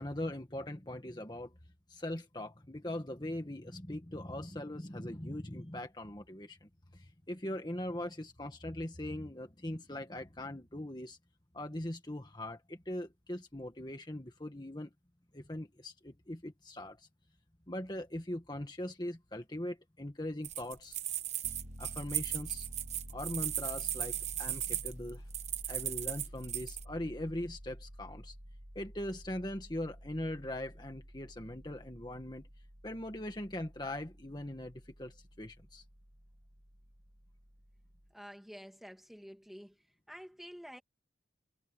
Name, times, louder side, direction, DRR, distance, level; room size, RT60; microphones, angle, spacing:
voice 1, 0.0-1.5 1.9-11.2 11.5-14.9 15.3-17.1 17.7-21.0 21.8-22.7 23.1-25.2 25.7-28.3 28.7-32.5 32.8-35.8, left 1 dB, 25° left, 1.7 m, -41 dB
sound 1, 20.4-26.8, right 12 dB, 40° right, 1.1 m, -37 dB
Piano, 21.4-38.1, equal, 70° right, 4.3 m, -51 dB
voice 2, 38.1-39.8 40.1-40.8, equal, ahead, 2.4 m, -49 dB
head